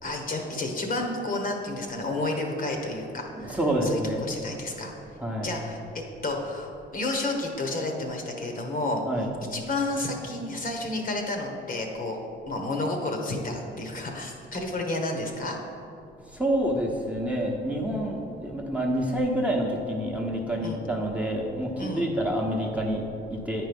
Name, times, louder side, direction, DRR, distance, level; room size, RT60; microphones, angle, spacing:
voice 1, 0.0-4.9 5.4-9.0 9.5-12.2 12.5-15.6 20.6-20.8 21.8-22.1, left 2 dB, 45° left, 2 dB, 1.3 m, -31 dB
voice 2, 3.3-4.2 5.2-5.6 9.1-9.3 16.2-23.7, right 1 dB, 5° right, -2 dB, 1.1 m, -28 dB
8.9 x 4.7 x 5.3 m, 2.6 s
cardioid pair, 90°, 20 cm